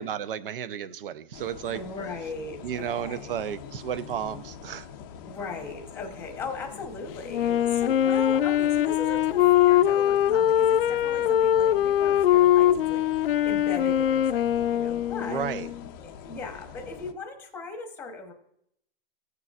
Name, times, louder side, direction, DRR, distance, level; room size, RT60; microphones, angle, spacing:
voice 1, 0.0-1.8 2.6-4.9 15.2-15.7, right 9 dB, 70° right, 0.7 m, -33 dB
sound 1, 1.3-17.1, left 8 dB, 25° left, 0.5 m, -44 dB
voice 2, 1.7-3.3 5.2-15.5 16.0-18.3, left 4 dB, 10° left, 1.0 m, -38 dB
Wind instrument woodwind instrument, 7.3-15.9, left 11 dB, 75° left, 0.5 m, -22 dB
16.0 x 6.8 x 2.4 m
hypercardioid pair, 160°, 29 cm